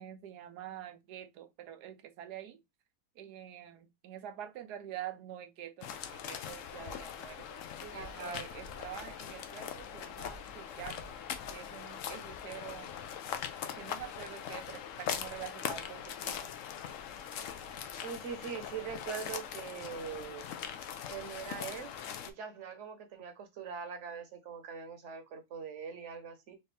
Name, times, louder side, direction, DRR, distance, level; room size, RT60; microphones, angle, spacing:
voice 1, 0.0-2.6 3.2-7.6 7.9-11.2 11.5-12.9 13.8-16.5, right 11 dB, 85° right, 1.3 m, -46 dB
sound 1, 5.8-22.3, left 8 dB, 65° left, 0.9 m, -41 dB
voice 2, 7.8-8.5 18.0-20.5 21.1-21.9 22.2-26.5, right 6 dB, 55° right, 1.1 m, -42 dB
4.2 x 2.7 x 3.2 m
omnidirectional pair, 1.7 m